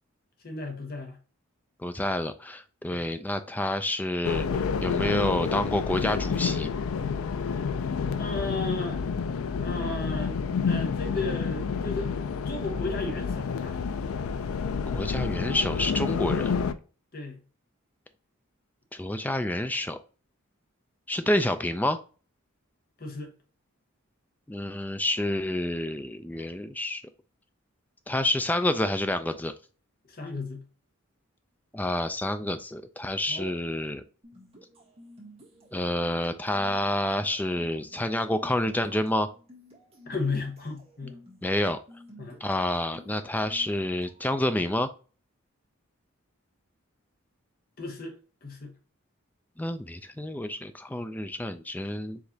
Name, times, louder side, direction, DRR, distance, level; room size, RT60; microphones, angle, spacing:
voice 1, 0.4-1.2 8.1-9.0 9.6-10.4 10.6-12.1 12.4-13.8 17.1-17.4 23.0-23.3 30.0-30.6 33.3-33.6 40.1-41.2 42.2-42.4 47.8-48.1 48.4-48.7, left 3 dB, 45° left, 1.1 m, -34 dB
voice 2, 1.8-6.7 14.9-16.5 18.9-20.0 21.1-22.0 24.5-27.0 28.1-29.5 31.7-34.0 35.7-39.3 41.4-41.8 42.4-44.9 49.6-52.2, left 1 dB, 10° left, 0.3 m, -28 dB
sound 1, 4.2-16.7, left 5 dB, 80° left, 0.4 m, -29 dB
sound 2, 34.2-44.5, equal, 30° right, 1.6 m, -53 dB
4.8 x 3.3 x 2.7 m
head